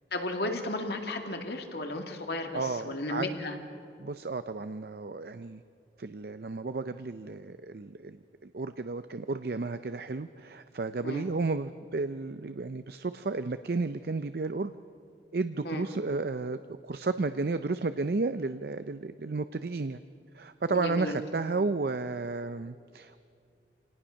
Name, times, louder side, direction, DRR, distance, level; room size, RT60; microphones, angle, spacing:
voice 1, 0.1-3.6 11.0-11.3 15.6-15.8 20.7-21.2, left 2 dB, 65° left, 4 dB, 2.2 m, -34 dB
voice 2, 2.5-3.2 4.0-5.6 6.0-14.7 15.3-20.0 20.3-23.2, right 3 dB, 60° right, 11 dB, 0.5 m, -33 dB
26.0 x 18.5 x 6.4 m, 2.5 s
head